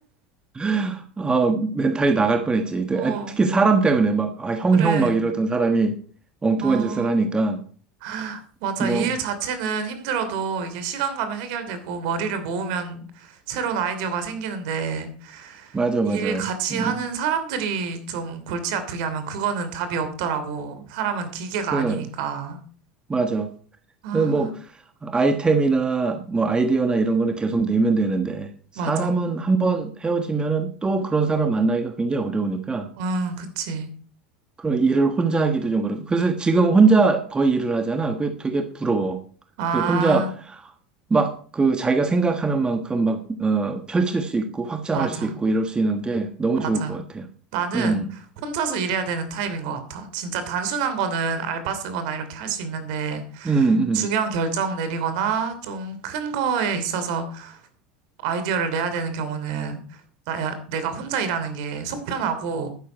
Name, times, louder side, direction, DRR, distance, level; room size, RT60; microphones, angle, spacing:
voice 1, 0.5-6.0 6.4-7.6 8.8-9.1 15.7-16.9 21.7-22.0 23.1-23.5 24.1-24.5 25.0-28.5 28.8-32.9 34.6-39.2 39.7-40.3 41.1-47.3 47.7-48.1 53.4-54.0, right 3 dB, 15° right, 8 dB, 1.4 m, -22 dB
voice 2, 2.9-3.4 4.7-5.2 6.6-7.3 8.0-15.8 16.0-22.6 24.0-24.5 28.7-29.1 33.0-33.9 39.6-40.3 44.9-45.4 46.6-47.0 47.5-53.7 53.9-57.6 58.2-60.0 60.3-62.7, right 6 dB, 60° right, 10 dB, 2.9 m, -28 dB
11.5 x 10.0 x 4.6 m, 0.43 s
figure-of-eight pair, 75°, 5 cm